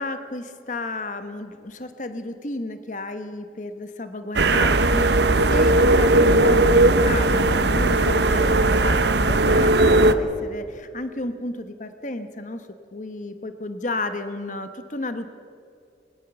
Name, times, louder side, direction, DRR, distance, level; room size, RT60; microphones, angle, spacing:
voice 1, 0.0-15.3, left 2 dB, 45° left, 9 dB, 1.1 m, -32 dB
sound 1, 4.3-10.1, right 2 dB, 70° right, 1.0 m, -18 dB
21.0 x 20.0 x 6.9 m, 2.4 s
head